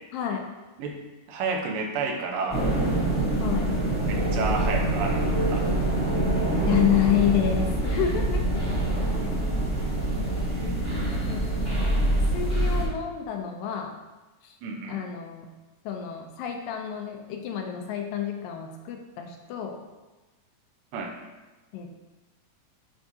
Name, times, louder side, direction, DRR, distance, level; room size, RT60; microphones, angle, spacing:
voice 1, 0.1-0.5 3.4-3.8 6.7-8.5 11.3-11.5 12.3-13.9 14.4-14.5 14.9-15.5 15.9-19.8 21.7-21.9, left 10 dB, 80° left, 3 dB, 2.3 m, -28 dB
voice 2, 1.3-2.6 4.1-5.6 10.5-10.8 14.6-15.0 20.9-21.1, right 4 dB, 80° right, 0 dB, 2.4 m, -31 dB
sound 1, 2.5-12.8, right 1 dB, 5° right, 0.7 m, -25 dB
10.5 x 3.6 x 2.7 m, 1.2 s
omnidirectional pair, 4.0 m